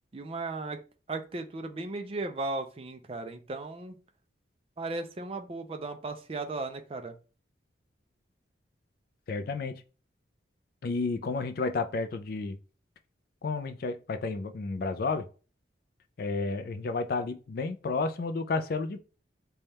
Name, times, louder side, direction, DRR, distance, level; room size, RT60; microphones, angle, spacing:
voice 1, 0.1-0.8 1.1-4.0 4.8-7.2, right 3 dB, 30° right, 0.4 m, -36 dB
voice 2, 9.3-9.8 10.8-12.6 13.4-15.3 16.2-19.0, left 3 dB, 50° left, 0.4 m, -31 dB
3.4 x 2.3 x 4.1 m
head